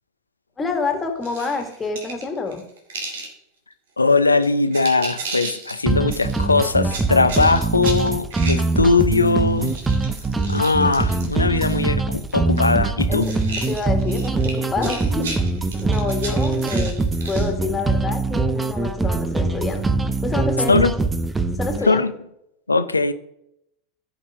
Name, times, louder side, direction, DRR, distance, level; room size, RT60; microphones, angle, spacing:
voice 1, 0.6-2.6 13.1-13.3 13.7-15.3 15.8-17.0 17.3-19.9 20.2-20.7 21.6-22.0, left 4 dB, 20° left, 4 dB, 2.2 m, -27 dB
sound 1, 1.2-3.3 4.0-4.1 4.4-5.8 6.1-9.2 9.5-11.9 12.1-12.8 13.1-17.5, right 3 dB, 65° right, 2.1 m, -34 dB
voice 2, 4.0-9.8 10.5-13.3 20.7-20.9 21.8-22.1 22.7-23.1, left 3 dB, 85° left, 12 dB, 0.6 m, -19 dB
sound 2, 5.9-21.9, right 3 dB, 15° right, 0.8 m, -23 dB
15.0 x 5.7 x 3.8 m, 0.78 s
figure-of-eight pair, 85°, 0 cm